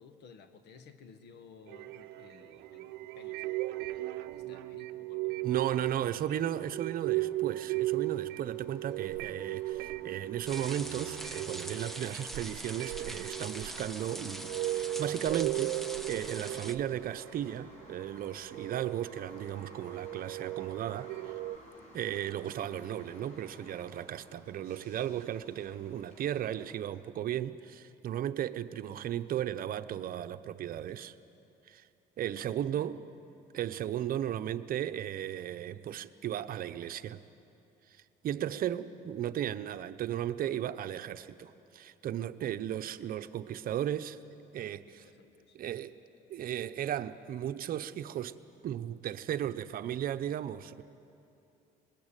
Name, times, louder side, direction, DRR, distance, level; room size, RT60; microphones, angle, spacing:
voice 1, 0.0-6.3 32.8-32.9 40.5-40.6 44.9-45.6, left 5 dB, 85° left, 8 dB, 1.7 m, -57 dB
sound 1, 1.7-17.9 18.4-21.6, right 17 dB, 90° right, 0.6 m, -37 dB
voice 2, 5.4-15.8 16.1-21.4 21.9-31.1 31.7-31.9 32.2-33.0 33.5-37.2 37.9-44.2 44.5-45.0 45.5-46.0 46.3-48.4 48.6-50.8, right 11 dB, 60° right, 11 dB, 0.9 m, -35 dB
sound 2, 7.7-26.7, equal, 40° left, 6.7 m, -57 dB
sound 3, 10.4-16.7, right 1 dB, ahead, 1.1 m, -43 dB
25.0 x 21.0 x 9.1 m, 2.8 s
cardioid pair, 110°, 17 cm